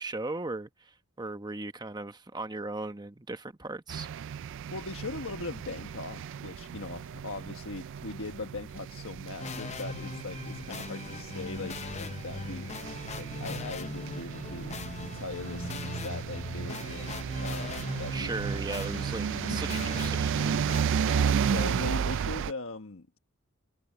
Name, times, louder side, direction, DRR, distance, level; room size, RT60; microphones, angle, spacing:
voice 1, 0.0-4.1 18.1-20.6, right 2 dB, 20° right, 1.1 m, -37 dB
sound 1, 3.9-22.5, right 7 dB, 60° right, 0.3 m, -33 dB
voice 2, 4.7-14.8 15.0-18.3 19.3-19.7 21.0-23.2, left 3 dB, 65° left, 1.4 m, -40 dB
sound 2, 9.4-20.8, left 3 dB, 30° left, 0.6 m, -40 dB
head